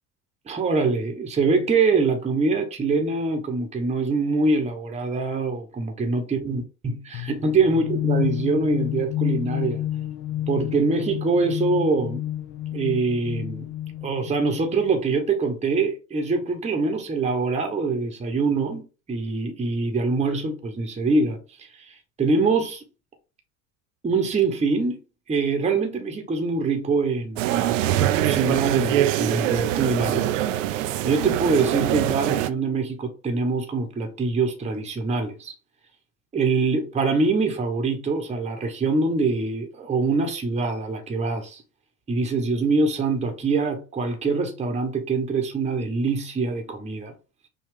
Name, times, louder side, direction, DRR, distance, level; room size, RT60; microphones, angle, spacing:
voice 1, 0.5-9.8 10.5-12.2 12.7-13.7 14.0-18.8 19.1-22.8 24.0-25.0 25.3-30.3 30.6-35.5 36.3-41.6 42.1-47.1, right 3 dB, 15° right, 0.9 m, -24 dB
sound 1, 7.1-14.9, left 12 dB, 45° left, 0.7 m, -30 dB
sound 2, 27.4-32.5, right 12 dB, 65° right, 0.5 m, -23 dB
5.6 x 2.3 x 3.5 m
figure-of-eight pair, 70°, 42 cm